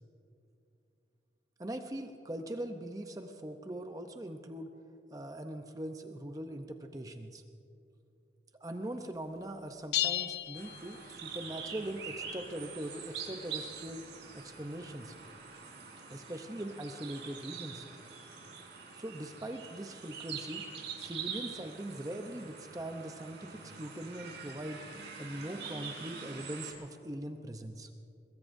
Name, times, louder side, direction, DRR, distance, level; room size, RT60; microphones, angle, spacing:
voice 1, 1.6-4.7 5.1-7.4 8.6-14.1 14.3-15.1 16.1-17.8 18.9-20.6 21.0-24.8 25.2-27.9, right 1 dB, 20° right, 5 dB, 0.6 m, -41 dB
sound 1, 9.9-11.5, left 13 dB, 65° left, 0.4 m, -34 dB
sound 2, 10.6-26.7, right 6 dB, 90° right, 3.5 m, -45 dB
22.5 x 22.5 x 2.6 m, 2.6 s
head